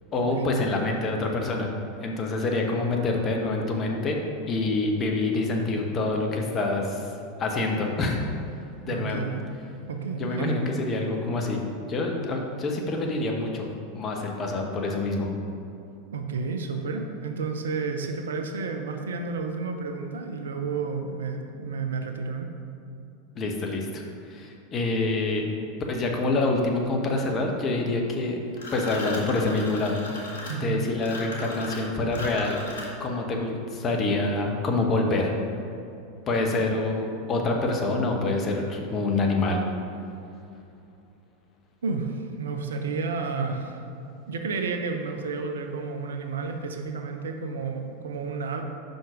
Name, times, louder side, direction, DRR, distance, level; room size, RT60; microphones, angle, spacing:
voice 1, 0.1-1.7 2.0-4.2 4.5-7.0 7.4-8.2 8.8-9.2 10.2-11.6 11.9-15.3 23.3-24.0 24.3-25.5 25.9-28.4 28.7-30.3 30.6-32.6 33.0-35.3 36.3-39.6, left 2 dB, 30° left, 1 dB, 1.0 m, -26 dB
voice 2, 8.9-9.4 9.9-10.7 16.1-22.5 30.5-30.8 41.8-43.8 44.3-48.6, right 4 dB, 70° right, 5 dB, 0.6 m, -31 dB
sound 1, 28.6-33.2, left 1 dB, 75° left, 1.2 m, -37 dB
5.6 x 5.3 x 5.0 m, 2.7 s
figure-of-eight pair, 85°, 0 cm